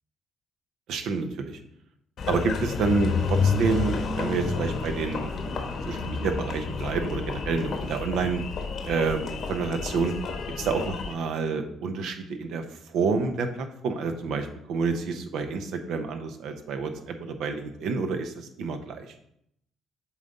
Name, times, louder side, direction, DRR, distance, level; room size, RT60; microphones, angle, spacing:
voice 1, 0.9-1.6 2.3-5.3 5.9-8.4 8.8-10.1 10.6-12.6 12.9-19.1, right 4 dB, 75° right, 6 dB, 0.8 m, -28 dB
Engine, 2.2-11.1, left 4 dB, 65° left, 1.1 m, -30 dB
7.2 x 3.9 x 4.1 m, 0.73 s
supercardioid pair, 65°, 0 cm